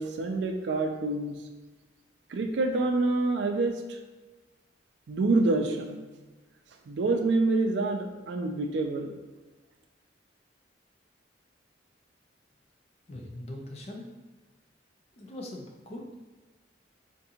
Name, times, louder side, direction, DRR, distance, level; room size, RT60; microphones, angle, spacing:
voice 1, 0.0-1.4 2.3-4.0 5.1-6.1 6.9-9.1, right 3 dB, 70° right, 4 dB, 0.4 m, -27 dB
voice 2, 13.1-14.1 15.2-16.2, left 1 dB, 35° left, 1 dB, 0.4 m, -41 dB
3.6 x 2.5 x 2.8 m, 1.2 s
head